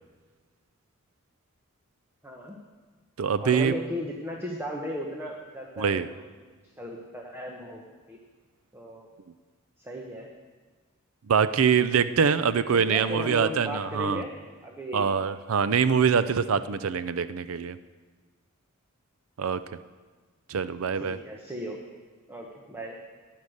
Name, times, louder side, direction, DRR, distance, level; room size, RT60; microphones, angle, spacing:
voice 1, 2.2-2.6 3.4-6.2 6.8-8.2 8.7-9.1 9.8-10.3 12.7-14.3 14.6-15.1 21.0-21.8 22.3-23.0, equal, 10° right, 0 dB, 1.1 m, -36 dB
voice 2, 3.2-3.7 5.8-6.1 11.3-14.2 14.9-17.8 19.4-19.6 20.5-21.2, right 6 dB, 75° right, 13 dB, 0.5 m, -24 dB
15.0 x 10.5 x 6.5 m, 1.4 s
head